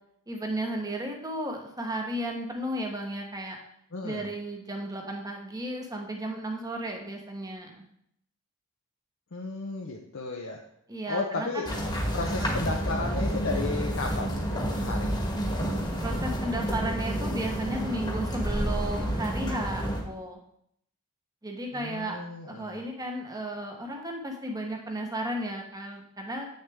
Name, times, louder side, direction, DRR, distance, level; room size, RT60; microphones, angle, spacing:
voice 1, 0.3-3.6 4.0-7.8 10.9-11.7 12.4-12.5 16.0-20.4 21.4-26.4, right 1 dB, 15° right, 2 dB, 1.1 m, -34 dB
voice 2, 3.9-4.3 9.3-10.6 11.1-11.7 12.1-15.1 21.7-22.8, left 3 dB, 60° left, 1 dB, 0.7 m, -34 dB
sound 1, 11.7-20.0, equal, 20° left, 1.4 m, -29 dB
8.1 x 6.5 x 3.5 m, 0.71 s
head